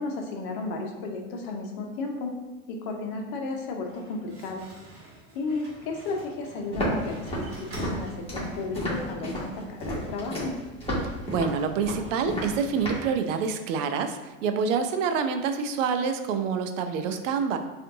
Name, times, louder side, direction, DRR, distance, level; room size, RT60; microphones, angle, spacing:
voice 1, 0.0-2.3 2.7-4.7 5.3-10.5, left 3 dB, 50° left, 2 dB, 0.8 m, -33 dB
Slam, 3.7-8.8, right 1 dB, 35° right, 1.3 m, -48 dB
Walk footsteps, 6.7-13.1, equal, 15° left, 1.5 m, -32 dB
voice 2, 11.3-17.6, right 6 dB, 65° right, 7 dB, 0.5 m, -27 dB
5.1 x 2.5 x 2.7 m, 1.1 s
hypercardioid pair, 90°, 42 cm